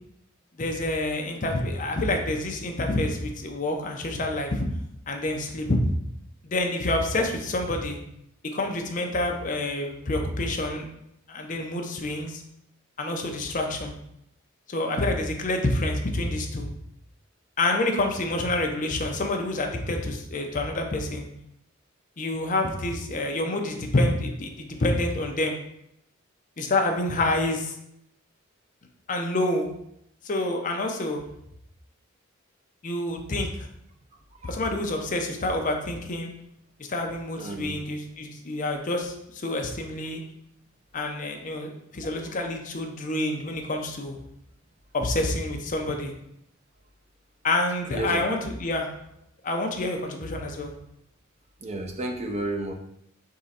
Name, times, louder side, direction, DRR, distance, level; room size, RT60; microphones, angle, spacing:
voice 1, 0.6-4.7 5.1-5.8 6.4-8.0 8.5-10.9 11.3-12.4 13.0-13.9 14.7-16.7 17.6-21.3 22.2-25.6 26.6-27.8 29.1-29.7 30.2-31.2 32.8-33.5 34.4-36.3 36.9-40.2 40.9-44.2 44.9-46.1 47.4-48.9 49.4-50.7, left 2 dB, 40° left, 3 dB, 0.6 m, -27 dB
voice 2, 37.4-37.8 47.9-48.2 51.6-52.7, right 2 dB, 30° right, 3 dB, 0.5 m, -31 dB
3.7 x 3.1 x 4.2 m, 0.77 s
head